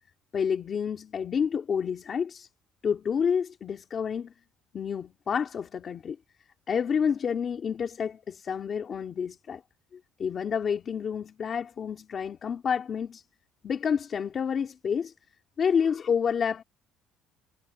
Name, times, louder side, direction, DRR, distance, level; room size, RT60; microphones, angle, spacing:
voice 1, 0.3-2.5 2.8-4.3 4.7-6.2 6.7-9.6 10.2-13.2 13.6-15.1 15.6-16.6, left 7 dB, 25° left, 2.5 m, -29 dB
cardioid pair, 180°, 0 cm